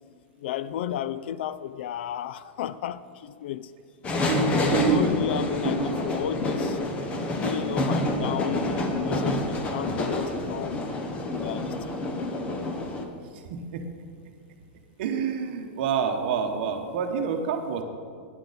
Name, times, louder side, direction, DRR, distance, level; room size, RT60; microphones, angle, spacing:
voice 1, 0.4-3.7 4.3-6.8 7.4-10.8 11.2-12.0, left 10 dB, 65° left, 0.4 m, -33 dB
sound 1, 4.0-13.0, left 1 dB, 20° left, 0.9 m, -28 dB
voice 2, 13.3-13.9 15.0-17.8, right 7 dB, 55° right, 1.0 m, -27 dB
13.0 x 9.7 x 4.1 m
supercardioid pair, 160°, 6 cm